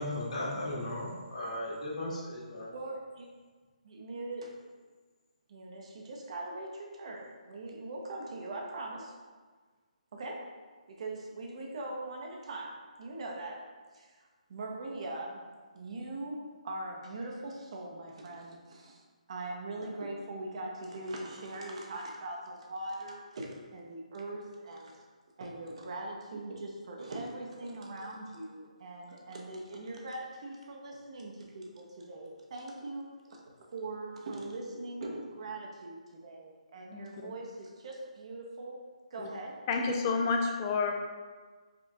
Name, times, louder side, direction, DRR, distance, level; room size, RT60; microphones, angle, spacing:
voice 1, 0.0-2.7, left 1 dB, 60° left, -7 dB, 1.4 m, -36 dB
voice 2, 2.7-3.3 3.8-4.5 5.5-9.1 10.1-10.5 10.9-13.6 13.9-15.4 15.7-19.0 19.3-25.0 25.4-33.4 33.7-38.8 39.1-39.6, right 2 dB, 50° right, 0 dB, 0.7 m, -41 dB
voice 3, 36.9-37.3 39.2-39.3 39.7-40.9, left 4 dB, 25° left, 2 dB, 0.3 m, -30 dB
5.0 x 2.4 x 2.7 m, 1.4 s
hypercardioid pair, 165°, 4 cm